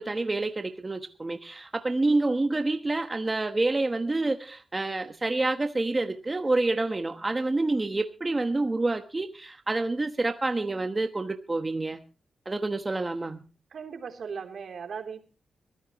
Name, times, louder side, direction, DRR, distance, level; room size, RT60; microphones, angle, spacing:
voice 1, 0.0-12.0 12.5-13.4, right 2 dB, 20° right, 7 dB, 1.1 m, -28 dB
voice 2, 13.7-15.2, right 6 dB, 65° right, 5 dB, 3.3 m, -38 dB
22.5 x 14.5 x 3.0 m, 0.34 s
wide cardioid pair, 115°, 0 cm